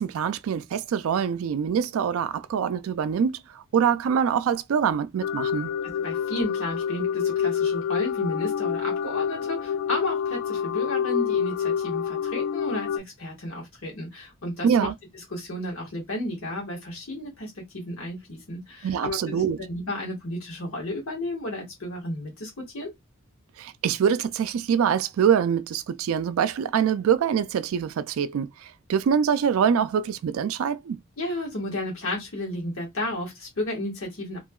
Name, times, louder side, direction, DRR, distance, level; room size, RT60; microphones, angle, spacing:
voice 1, 0.0-5.7 14.6-14.9 18.8-19.6 23.6-31.0, right 7 dB, 80° right, 0.3 m, -24 dB
sound 1, 5.2-13.0, left 8 dB, 75° left, 0.4 m, -27 dB
voice 2, 6.0-14.9 15.3-22.9 31.2-34.4, left 1 dB, 90° left, 1.5 m, -33 dB
2.9 x 2.7 x 2.3 m
head